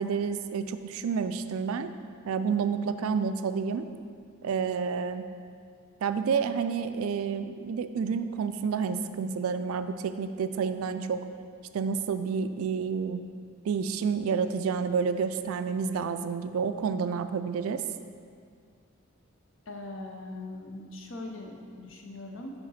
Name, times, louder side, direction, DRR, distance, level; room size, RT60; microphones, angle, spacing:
voice 1, 0.0-1.9 2.3-3.9 4.4-5.2 6.0-11.2 11.7-13.2 13.6-17.8, right 6 dB, 80° right, 10 dB, 0.3 m, -29 dB
voice 2, 19.7-22.5, left 2 dB, 60° left, 2 dB, 0.7 m, -41 dB
4.9 x 4.9 x 5.6 m, 2.2 s
head